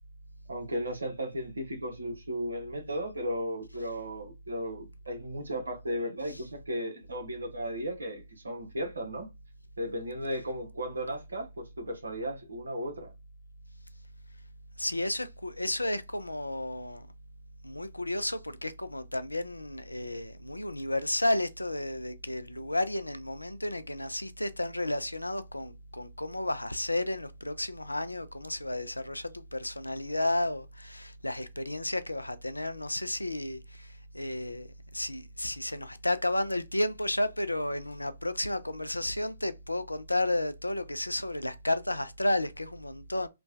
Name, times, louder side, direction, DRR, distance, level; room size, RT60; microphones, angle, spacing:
voice 1, 0.5-9.3 9.8-13.1, equal, 75° right, 0.9 m, -35 dB
voice 2, 14.8-17.1 17.6-43.3, left 1 dB, 90° left, 0.3 m, -32 dB
3.0 x 2.1 x 2.5 m
figure-of-eight pair, 125°, 0 cm